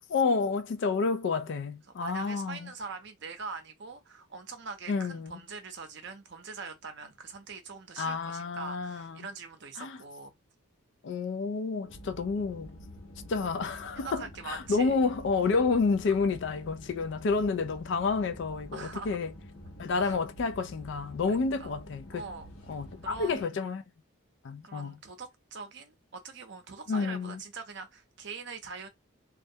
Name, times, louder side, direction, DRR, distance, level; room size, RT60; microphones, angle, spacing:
voice 1, 0.0-2.7 4.9-5.4 8.0-9.3 9.8-10.0 11.0-12.8 13.3-19.3 19.8-22.2 22.7-23.8 24.4-25.0 26.9-27.4, left 4 dB, 55° left, 0.3 m, -30 dB
voice 2, 2.0-10.3 14.0-14.9 16.1-16.2 18.7-19.2 20.0-20.2 21.6-21.7 22.1-22.5 23.0-23.5 24.6-28.9, right 4 dB, 55° right, 0.6 m, -43 dB
sound 1, 11.8-23.4, left 1 dB, 90° left, 0.8 m, -48 dB
2.3 x 2.1 x 2.7 m
head